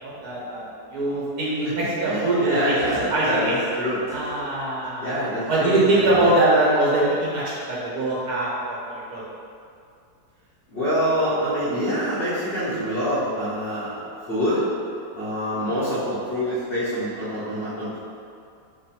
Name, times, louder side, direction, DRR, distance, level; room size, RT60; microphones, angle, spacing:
voice 1, 0.0-0.6 0.9-2.4 2.7-2.8 3.1-3.5 4.1-5.2 5.5-8.8 9.1-9.2, right 2 dB, 70° right, -7 dB, 1.5 m, -22 dB
voice 2, 1.6-4.2 5.0-6.3 10.7-14.0 14.3-14.6 15.1-18.0, equal, 45° left, -12 dB, 0.9 m, -26 dB
3.2 x 2.3 x 4.2 m, 2.4 s
omnidirectional pair, 1.7 m